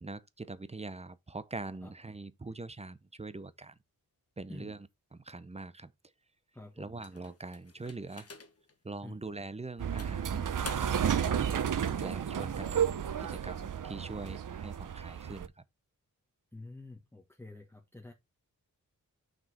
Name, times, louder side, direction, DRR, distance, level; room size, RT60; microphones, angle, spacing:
voice 1, 0.0-3.7 4.4-4.8 5.1-5.9 6.8-8.3 8.8-10.5 10.8-11.5 12.0-12.9 13.2-15.5, right 3 dB, 20° right, 0.6 m, -43 dB
voice 2, 1.8-2.2 4.5-4.8 6.5-7.0 9.0-9.2 12.5-12.8 16.5-18.1, left 2 dB, 5° left, 1.4 m, -49 dB
sound 1, 7.0-8.7 9.3-9.4 10.0-11.2, left 4 dB, 45° left, 1.3 m, -48 dB
sound 2, 9.8-15.5, right 8 dB, 60° right, 0.7 m, -32 dB
6.0 x 5.0 x 4.3 m
wide cardioid pair, 135°, 35 cm